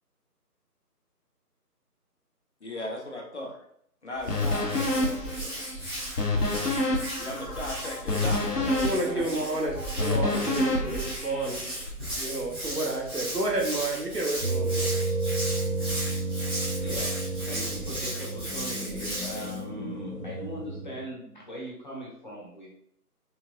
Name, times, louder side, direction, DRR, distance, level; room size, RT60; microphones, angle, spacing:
voice 1, 2.6-3.6 4.0-5.6 7.2-9.3 13.1-13.5, left 1 dB, 45° left, 1 dB, 0.9 m, -38 dB
Hands, 4.2-19.6, right 1 dB, 15° right, 0.9 m, -36 dB
sound 1, 4.3-11.9, left 2 dB, 75° left, 1.2 m, -29 dB
voice 2, 8.8-11.6 12.2-14.9, right 2 dB, 85° right, -1 dB, 1.5 m, -30 dB
sound 2, 14.4-21.1, right 2 dB, 70° right, 1.5 m, -31 dB
voice 3, 16.3-22.7, equal, 30° left, -4 dB, 1.3 m, -40 dB
4.1 x 4.1 x 2.6 m, 0.70 s
figure-of-eight pair, 160°, 47 cm